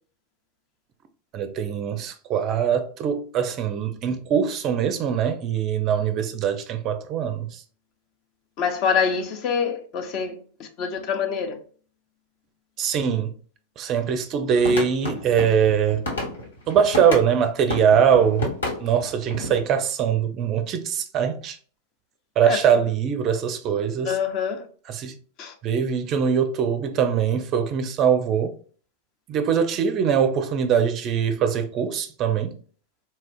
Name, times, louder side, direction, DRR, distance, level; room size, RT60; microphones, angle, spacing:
voice 1, 1.3-7.6 12.8-13.3 13.8-16.0 16.7-21.6 22.4-24.1 24.9-25.2 25.6-28.6 29.3-32.6, right 7 dB, 35° right, 0.4 m, -22 dB
voice 2, 8.6-10.3 10.6-11.6 22.4-22.6 24.0-24.7 25.4-25.5, left 6 dB, 40° left, 0.6 m, -25 dB
sound 1, 14.6-17.3 17.7-19.6, left 2 dB, 70° left, 1.2 m, -30 dB
4.2 x 2.4 x 2.3 m
figure-of-eight pair, 90°, 0 cm